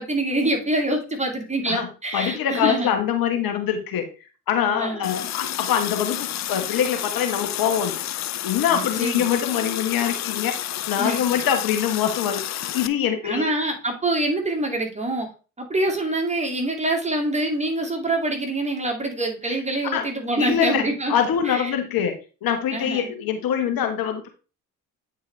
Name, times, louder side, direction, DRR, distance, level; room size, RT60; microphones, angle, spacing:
voice 1, 0.0-2.9 4.7-5.2 8.7-9.2 11.0-11.2 13.2-15.3 15.6-21.1 21.5-21.7 22.7-23.1, right 1 dB, 15° right, 1 dB, 2.4 m, -25 dB
voice 2, 1.7-4.1 4.5-8.0 8.4-10.6 10.9-12.4 12.7-13.5 19.5-19.6 19.9-20.1 20.4-20.8 21.1-22.1 22.4-24.3, left 9 dB, 60° left, 6 dB, 1.4 m, -24 dB
Water tap faucet, 5.0-12.9, left 12 dB, 45° left, 0.6 m, -30 dB
9.0 x 4.6 x 3.3 m, 0.34 s
hypercardioid pair, 55°, 39 cm